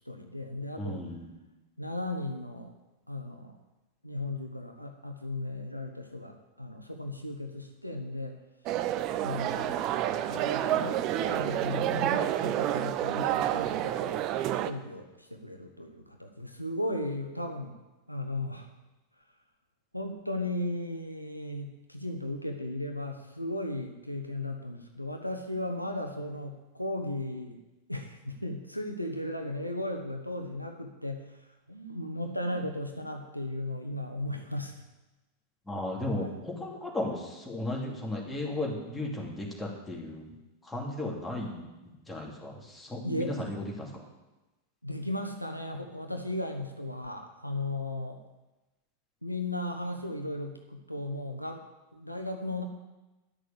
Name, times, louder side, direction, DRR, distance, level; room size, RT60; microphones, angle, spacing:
voice 1, 0.1-1.0 1.8-2.7 3.1-3.6 4.0-8.4 9.2-9.8 10.3-14.3 14.6-17.8 18.1-18.7 19.9-27.6 27.9-31.4 31.7-34.8 36.2-36.4 43.0-43.4 44.8-48.2 49.2-51.6 51.9-52.6, left 1 dB, 90° left, 5 dB, 1.0 m, -36 dB
voice 2, 0.8-1.2 35.7-40.3 40.6-41.6 42.1-43.9, left 1 dB, 5° left, -3 dB, 2.8 m, -35 dB
sound 1, 8.7-14.7, right 12 dB, 40° right, 0.6 m, -29 dB
11.5 x 6.3 x 7.1 m, 1.1 s
figure-of-eight pair, 90°, 0 cm